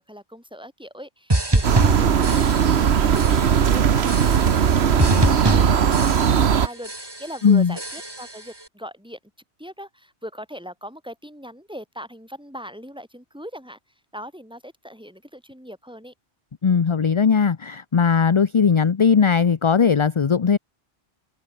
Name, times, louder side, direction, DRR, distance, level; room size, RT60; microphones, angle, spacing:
voice 1, 0.0-6.9 7.2-9.2 9.6-13.8 14.1-16.1, equal, 5° right, 4.2 m, -40 dB
sound 1, 1.3-2.9 3.1-3.7 4.1-4.7 5.0-6.6 6.8-7.4 7.8-8.4, right 1 dB, 20° right, 2.6 m, -25 dB
sound 2, 1.6-6.7, right 8 dB, 80° right, 1.3 m, -18 dB
voice 2, 7.4-7.8 16.6-20.6, left 6 dB, 35° left, 0.6 m, -18 dB
omnidirectional pair, 1.1 m